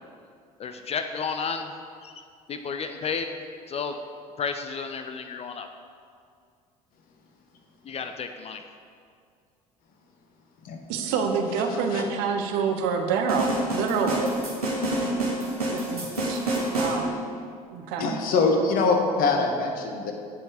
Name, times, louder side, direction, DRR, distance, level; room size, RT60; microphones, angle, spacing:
voice 1, 0.6-1.7 2.0-2.1 2.5-3.3 3.7-3.9 4.4-5.7 7.8-8.6, left 5 dB, 35° left, 7 dB, 0.7 m, -32 dB
voice 2, 10.9-14.3 15.7-16.4 16.7-17.1 17.7-18.1, right 5 dB, 60° right, 4 dB, 1.2 m, -27 dB
sound 1, 13.3-17.0, right 1 dB, 85° right, 2.2 m, -27 dB
voice 3, 18.0-20.1, left 3 dB, 50° left, 3 dB, 1.5 m, -23 dB
16.0 x 5.8 x 4.9 m, 2.3 s
figure-of-eight pair, 60°, 19 cm